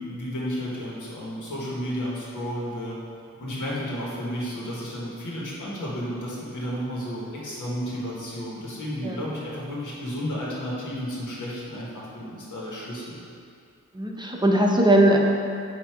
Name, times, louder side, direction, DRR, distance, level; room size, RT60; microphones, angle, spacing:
voice 1, 0.0-3.0 3.4-13.2, equal, 85° left, -5 dB, 1.5 m, -32 dB
voice 2, 13.9-15.2, right 1 dB, 15° right, -1 dB, 0.7 m, -19 dB
7.9 x 2.8 x 4.7 m, 2.4 s
cardioid pair, 70°, 30 cm